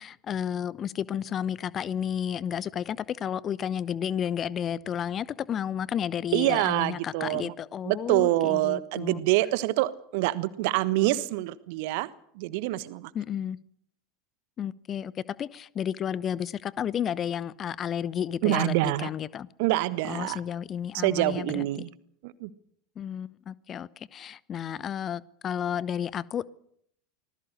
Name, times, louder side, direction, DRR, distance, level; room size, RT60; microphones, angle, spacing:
voice 1, 0.0-9.2 13.1-13.6 14.6-15.1 15.4-19.5 20.0-21.7 23.0-26.5, left 9 dB, 30° left, 0.9 m, -32 dB
voice 2, 6.3-7.5 7.8-12.1 12.3-13.1 18.4-19.1 19.6-20.4 21.0-21.9 22.2-22.5, right 17 dB, 55° right, 1.3 m, -26 dB
25.5 x 20.0 x 6.6 m
figure-of-eight pair, 80°, 0 cm